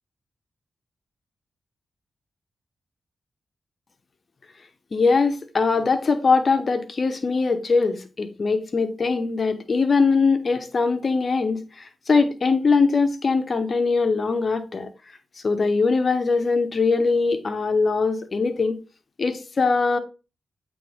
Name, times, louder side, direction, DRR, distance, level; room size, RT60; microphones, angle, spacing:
voice 1, 4.9-11.6 12.1-14.9 15.4-18.8 19.2-20.0, left 4 dB, 55° left, 1.1 m, -21 dB
8.5 x 3.5 x 3.5 m
cardioid pair, 50°, 0 cm